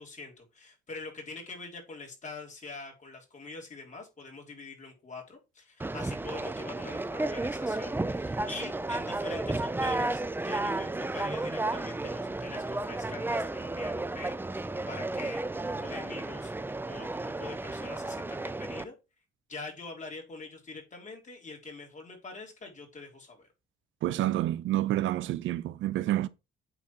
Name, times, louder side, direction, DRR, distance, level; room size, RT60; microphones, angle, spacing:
voice 1, 0.0-16.5 16.9-18.9 19.5-23.5, left 3 dB, 40° left, 3.4 m, -44 dB
Conversation, 5.8-18.8, right 2 dB, 10° right, 0.5 m, -33 dB
voice 2, 24.0-26.3, right 14 dB, 80° right, 0.6 m, -28 dB
8.9 x 3.8 x 4.5 m
cardioid pair, 90°, 20 cm